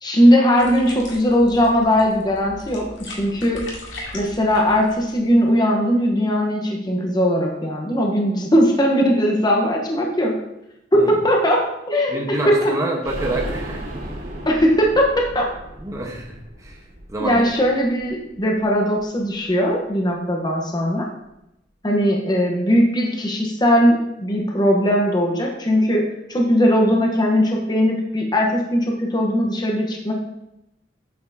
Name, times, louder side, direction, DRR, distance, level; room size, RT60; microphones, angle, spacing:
voice 1, 0.0-3.6 4.1-10.4 10.9-11.6 11.9-12.7 14.5-15.5 17.2-21.0 21.8-30.1, equal, 25° left, 0 dB, 1.0 m, -19 dB
sound 1, 0.6-5.6, left 1 dB, 75° left, 2.2 m, -39 dB
voice 2, 12.1-14.1 15.8-16.8 17.1-17.5, right 2 dB, 20° right, -1 dB, 1.0 m, -28 dB
sound 2, 13.0-18.6 19.0-19.1 19.4-19.5, right 1 dB, 60° right, 2.8 m, -35 dB
8.5 x 6.9 x 2.7 m, 0.87 s
head